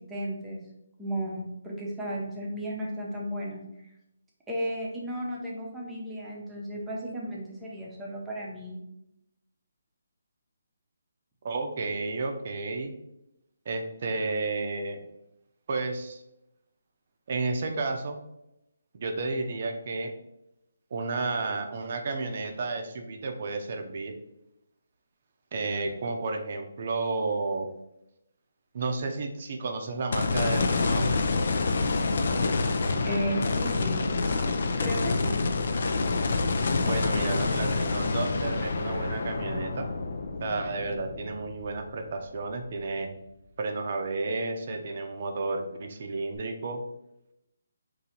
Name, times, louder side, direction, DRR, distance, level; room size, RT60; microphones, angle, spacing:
voice 1, 0.1-0.6 1.0-3.6 4.5-8.8 33.1-34.1 34.8-35.4, right 1 dB, 10° right, -4 dB, 0.8 m, -34 dB
voice 2, 11.4-12.9 13.7-15.0 15.7-16.2 17.3-18.2 18.9-20.1 20.9-24.1 25.5-27.7 28.7-31.1 36.8-39.9 40.4-43.1 43.6-46.8, right 3 dB, 45° right, 4 dB, 0.6 m, -32 dB
sound 1, 30.1-42.4 42.9-43.0 46.3-46.4, left 3 dB, 55° left, 0.5 m, -27 dB
3.9 x 2.7 x 4.3 m, 0.86 s
hypercardioid pair, 165°, 0 cm